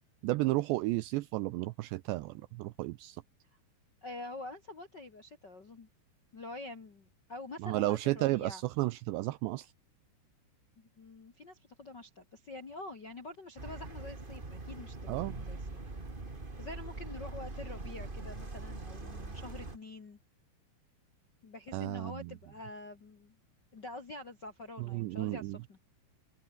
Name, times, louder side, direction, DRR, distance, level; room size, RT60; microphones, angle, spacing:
voice 1, 0.2-3.2 7.6-9.7 15.1-15.4 21.7-22.3 24.8-25.6, right 19 dB, 80° right, 2.5 m, -33 dB
voice 2, 4.0-5.9 6.3-8.6 10.8-15.8 16.6-20.2 21.4-23.4 23.7-25.8, left 2 dB, 45° left, 1.4 m, -46 dB
sound 1, 13.6-19.8, right 3 dB, 25° right, 1.0 m, -42 dB
omnidirectional pair, 5.6 m